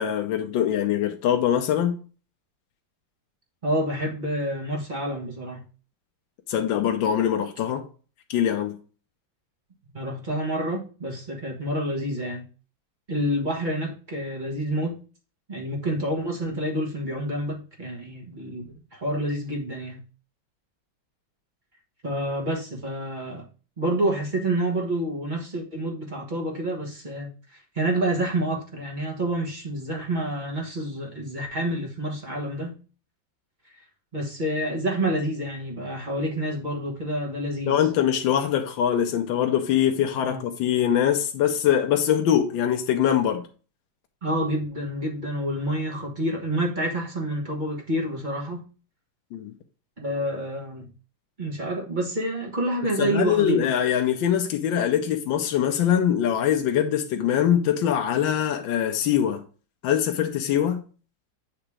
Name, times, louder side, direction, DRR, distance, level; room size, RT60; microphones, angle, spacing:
voice 1, 0.0-2.0 6.5-7.8 8.3-8.8 37.7-43.5 49.3-49.5 53.0-59.4 59.8-60.8, left 9 dB, 80° left, 1.4 m, -23 dB
voice 2, 3.6-5.6 9.9-12.4 13.1-15.0 15.5-20.0 22.0-23.4 23.8-32.7 34.1-37.7 40.2-40.4 44.2-48.6 50.0-50.9 51.4-53.7, right 1 dB, 30° right, 1.3 m, -28 dB
7.8 x 2.9 x 4.8 m
omnidirectional pair, 2.1 m